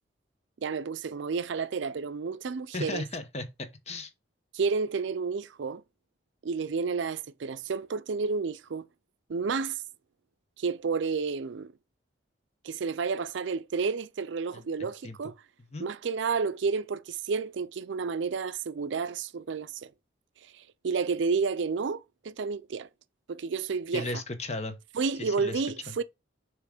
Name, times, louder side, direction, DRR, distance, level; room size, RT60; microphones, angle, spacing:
voice 1, 0.6-3.0 4.5-5.8 6.4-8.9 9.3-9.8 10.6-11.7 12.6-15.3 15.8-19.9 20.5-22.9 23.3-24.1 24.9-26.0, right 5 dB, 70° right, 0.4 m, -31 dB
voice 2, 2.7-4.1 14.5-14.6 15.0-15.2 15.7-15.9 23.9-24.8 25.2-25.6 25.9-26.0, left 2 dB, 35° left, 0.9 m, -35 dB
6.9 x 3.0 x 4.9 m
head